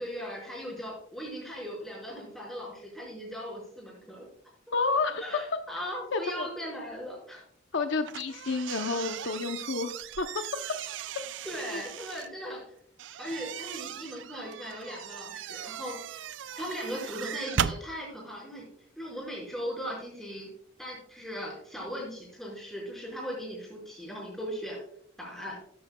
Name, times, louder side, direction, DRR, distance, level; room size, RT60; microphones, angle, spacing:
voice 1, 0.0-4.3 5.2-7.4 11.4-12.6 13.2-16.3 16.5-18.7 19.0-20.5 20.8-24.8 25.2-25.6, equal, ahead, -4 dB, 4.9 m, -38 dB
voice 2, 4.7-5.2 6.1-6.5 7.7-10.3 11.6-11.8, left 4 dB, 65° left, 7 dB, 0.7 m, -30 dB
sound 1, 8.0-12.3 13.0-17.8, right 9 dB, 65° right, 0.4 m, -37 dB
13.0 x 11.5 x 2.3 m, 0.64 s
head